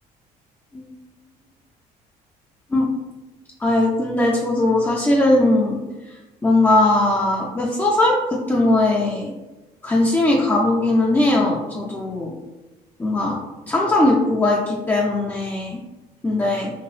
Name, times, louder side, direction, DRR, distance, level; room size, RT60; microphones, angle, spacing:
voice 1, 3.6-5.8 6.4-9.3 9.8-12.3 13.0-13.4 13.7-15.8 16.2-16.7, left 2 dB, 10° left, -4 dB, 0.4 m, -19 dB
2.9 x 2.9 x 3.1 m, 1.1 s
cardioid pair, 110°, 17 cm